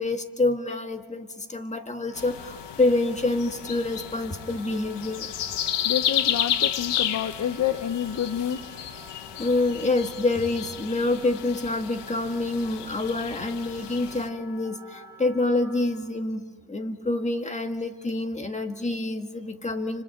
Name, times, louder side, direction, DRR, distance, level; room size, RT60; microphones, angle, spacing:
voice 1, 0.0-5.3 9.4-16.4 16.7-20.0, left 2 dB, 15° left, 6 dB, 1.8 m, -27 dB
Wind instrument woodwind instrument, 2.0-16.1, right 1 dB, 55° left, 7.8 m, -49 dB
sound 1, 2.1-14.3, left 11 dB, 75° left, 1.1 m, -32 dB
voice 2, 5.8-8.6, left 9 dB, 40° left, 10 dB, 0.9 m, -28 dB
29.5 x 25.5 x 5.8 m, 1.4 s
cardioid pair, 130°, 42 cm